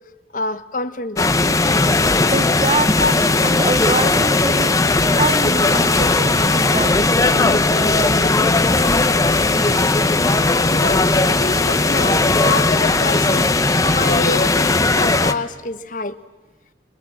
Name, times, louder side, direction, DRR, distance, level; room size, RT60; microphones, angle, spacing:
voice 1, 0.3-1.4 3.0-3.1 6.1-6.2 10.6-16.2, left 3 dB, 45° left, 11 dB, 1.0 m, -26 dB
sound 1, 1.2-15.3, left 3 dB, 20° left, 0.7 m, -17 dB
voice 2, 2.3-4.7 5.1-7.1 7.3-8.5 10.1-10.8, right 3 dB, 30° right, 12 dB, 0.7 m, -26 dB
23.0 x 22.0 x 8.5 m, 1.2 s
head